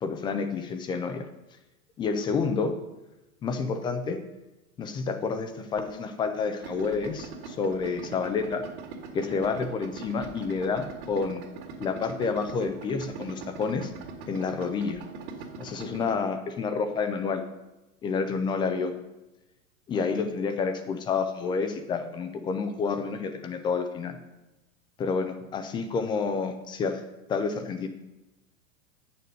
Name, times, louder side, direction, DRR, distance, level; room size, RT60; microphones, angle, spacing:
voice 1, 0.0-1.3 2.0-2.8 3.4-4.2 4.8-8.6 9.1-11.4 11.8-13.9 14.3-15.0 15.6-17.4 18.0-19.0 19.9-24.2 25.0-27.0 27.3-27.9, left 5 dB, 10° left, 8 dB, 0.3 m, -29 dB
Idling, 6.6-16.2, right 5 dB, 45° right, 2.0 m, -42 dB
8.7 x 6.8 x 6.4 m, 1.0 s
hypercardioid pair, 130°, 43 cm